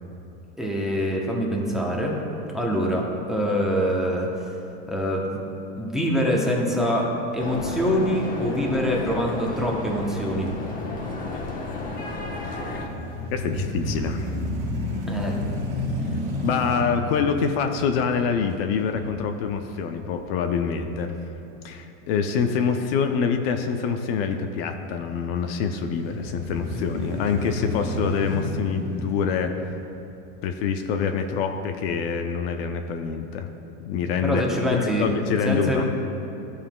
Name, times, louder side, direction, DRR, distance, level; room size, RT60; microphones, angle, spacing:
voice 1, 0.6-2.2 2.5-4.5 4.9-5.4 5.8-7.1 7.3-10.5 15.1-15.4 34.2-35.1 35.4-35.8, equal, ahead, -3 dB, 0.8 m, -24 dB
sound 1, 7.4-12.9, left 3 dB, 25° left, 1.1 m, -32 dB
voice 2, 12.4-12.8 13.3-14.3 16.4-21.2 21.6-29.5 30.4-33.5 33.9-34.5 35.0-35.8, left 6 dB, 55° left, 6 dB, 0.6 m, -26 dB
sound 2, 12.6-20.6 21.1-21.2 25.7-30.2, left 1 dB, 25° right, 1.7 m, -31 dB
14.0 x 5.6 x 2.3 m, 3.0 s
supercardioid pair, 140°, 36 cm